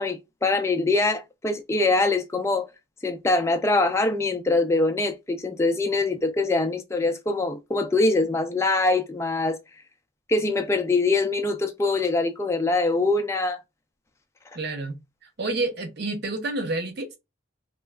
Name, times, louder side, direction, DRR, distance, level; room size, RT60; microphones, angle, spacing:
voice 1, 0.0-2.7 3.0-9.6 10.3-13.6, left 2 dB, 15° left, 0.3 m, -23 dB
voice 2, 14.5-17.2, right 2 dB, 50° right, 0.7 m, -29 dB
3.0 x 2.3 x 2.2 m
head